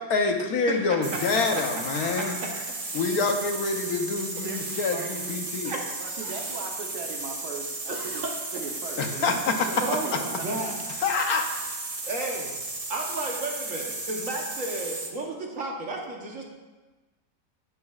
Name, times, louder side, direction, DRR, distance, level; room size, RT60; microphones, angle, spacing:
voice 1, 0.0-2.3 2.9-5.7 9.0-9.6 11.0-11.5, left 4 dB, 65° left, 4 dB, 1.3 m, -26 dB
sound 1, 1.0-15.2, right 2 dB, 35° right, 0.6 m, -34 dB
voice 2, 1.3-2.6 5.6-5.8 6.2-6.3 7.9-8.2 9.8-10.8 12.1-12.5 12.9-16.5, right 2 dB, 55° right, -1 dB, 1.3 m, -33 dB
voice 3, 4.2-5.5 6.0-8.2 8.5-10.6, right 5 dB, 70° right, 2 dB, 1.5 m, -40 dB
10.5 x 8.2 x 2.4 m, 1.2 s
omnidirectional pair, 1.8 m